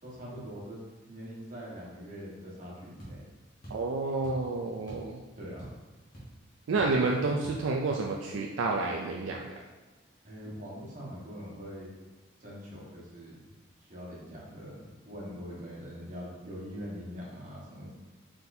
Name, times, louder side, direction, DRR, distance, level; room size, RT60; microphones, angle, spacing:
voice 1, 0.0-3.2 5.3-5.7 10.2-11.9 12.4-13.5 13.8-17.9, equal, 40° right, -7 dB, 1.2 m, -43 dB
sound 1, 3.0-3.2 3.6-3.9 4.2-4.5 4.9-5.1 5.4-5.9 6.1-6.3 6.8-7.0 7.4-7.6, right 1 dB, 40° left, 1.3 m, -44 dB
voice 2, 3.7-5.2 6.7-9.4, right 3 dB, 70° right, 0 dB, 0.3 m, -29 dB
4.2 x 3.7 x 2.6 m, 1.2 s
head